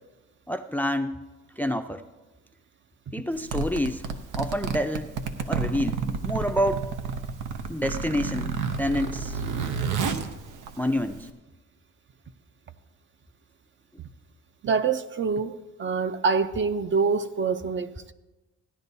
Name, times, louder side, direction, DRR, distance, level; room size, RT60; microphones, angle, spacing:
voice 1, 0.5-1.2 1.6-2.0 3.1-5.1 5.5-6.8 7.7-9.4 10.8-11.3, equal, 5° left, 0.4 m, -28 dB
Zipper (clothing), 3.3-11.3, right 5 dB, 90° right, 0.8 m, -31 dB
voice 2, 14.6-18.1, right 5 dB, 40° right, 0.6 m, -26 dB
16.0 x 10.5 x 2.7 m
cardioid pair, 90°, 30 cm